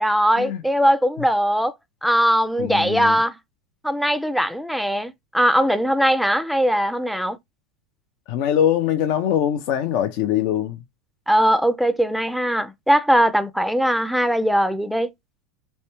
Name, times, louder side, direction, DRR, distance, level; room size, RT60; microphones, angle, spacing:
voice 1, 0.0-1.7 2.0-3.4 3.8-7.4 11.3-15.1, equal, ahead, 0.4 m, -20 dB
voice 2, 2.6-3.2 8.3-10.8, left 10 dB, 60° left, 0.5 m, -22 dB
3.2 x 3.2 x 2.9 m
hypercardioid pair, 85°, 0 cm